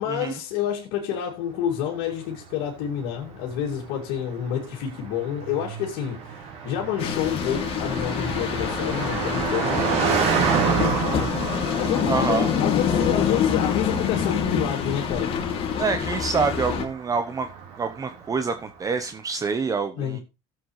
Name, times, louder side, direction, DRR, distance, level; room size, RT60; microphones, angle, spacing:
voice 1, 0.0-15.4 20.0-20.2, left 9 dB, 85° left, 2.4 m, -29 dB
Car passing by, 2.1-18.5, right 6 dB, 60° right, 3.8 m, -30 dB
sound 1, 7.0-16.8, left 7 dB, 50° left, 2.4 m, -26 dB
voice 2, 12.1-12.5 15.8-17.5 17.8-20.2, right 5 dB, 30° right, 0.9 m, -26 dB
16.5 x 7.8 x 3.2 m
supercardioid pair, 100°, 12 cm